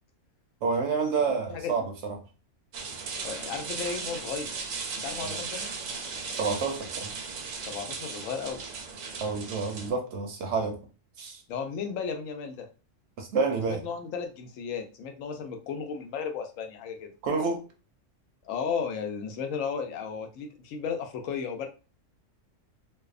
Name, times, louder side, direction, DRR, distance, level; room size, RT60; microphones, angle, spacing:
voice 1, 0.6-2.2 5.2-5.4 6.4-7.1 9.2-10.8 11.2-11.4 13.2-13.8 17.2-17.6, right 4 dB, 65° right, 0.8 m, -29 dB
sound 1, 2.7-9.9, right 5 dB, 90° right, 1.0 m, -37 dB
voice 2, 3.2-4.5 5.0-5.7 7.7-8.6 11.5-12.7 13.5-17.1 18.4-21.7, left 6 dB, 80° left, 1.0 m, -34 dB
2.6 x 2.1 x 2.4 m
omnidirectional pair, 1.4 m